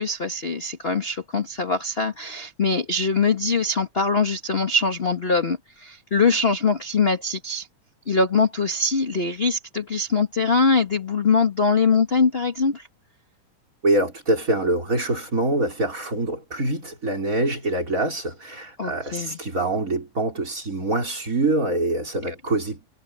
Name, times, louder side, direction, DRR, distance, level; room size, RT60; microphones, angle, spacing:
voice 1, 0.0-7.7 8.1-12.9 18.8-19.4 22.2-22.3, left 4 dB, 30° left, 1.2 m, -22 dB
voice 2, 13.8-22.9, right 2 dB, 25° right, 5.0 m, -25 dB
omnidirectional pair, 3.6 m